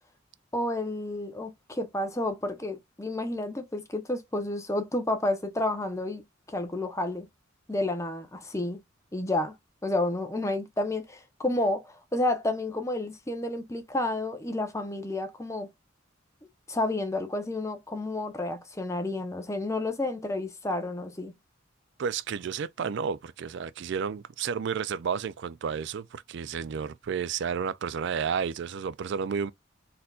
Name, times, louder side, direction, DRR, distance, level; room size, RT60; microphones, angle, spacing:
voice 1, 0.5-6.2 6.5-7.3 7.7-8.8 9.1-9.5 9.8-15.7 16.7-21.3, left 2 dB, 15° left, 0.9 m, -30 dB
voice 2, 22.0-29.5, right 6 dB, 60° right, 0.4 m, -31 dB
4.2 x 4.0 x 2.4 m
head